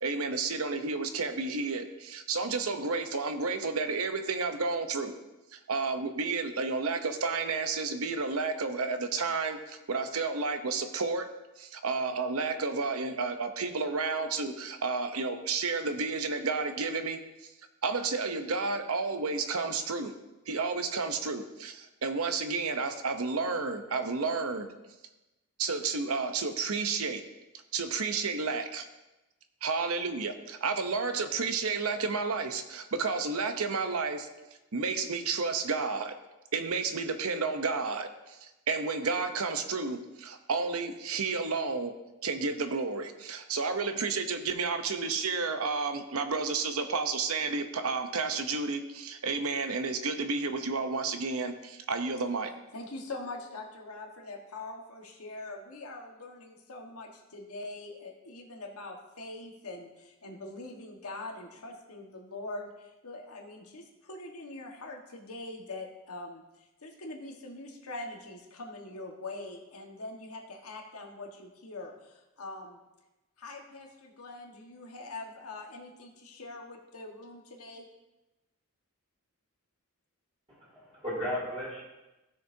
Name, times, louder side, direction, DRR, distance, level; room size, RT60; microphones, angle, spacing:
voice 1, 0.0-5.2 5.5-11.3 11.6-17.2 17.8-20.1 20.5-24.7 25.6-27.2 27.7-28.9 29.6-34.3 34.7-36.1 36.5-41.9 42.2-52.5, right 4 dB, 80° right, 8 dB, 0.8 m, -31 dB
voice 2, 52.7-72.8 73.4-77.8, left 2 dB, 90° left, 1 dB, 1.4 m, -43 dB
voice 3, 80.5-81.8, equal, 25° right, -9 dB, 3.1 m, -35 dB
16.0 x 6.6 x 2.7 m, 1.0 s
head